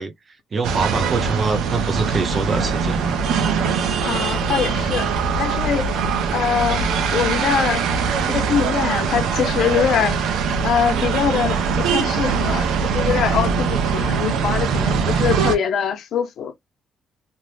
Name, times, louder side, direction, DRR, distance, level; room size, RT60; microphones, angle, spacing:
voice 1, 0.0-3.2, right 4 dB, 40° right, 0.8 m, -25 dB
sound 1, 0.6-15.6, right 6 dB, 85° right, 0.6 m, -22 dB
voice 2, 4.0-5.1 5.4-5.9 6.3-7.8 8.3-10.3 10.6-16.5, left 8 dB, 70° left, 0.7 m, -23 dB
2.7 x 2.1 x 3.2 m
cardioid pair, 90°, 0 cm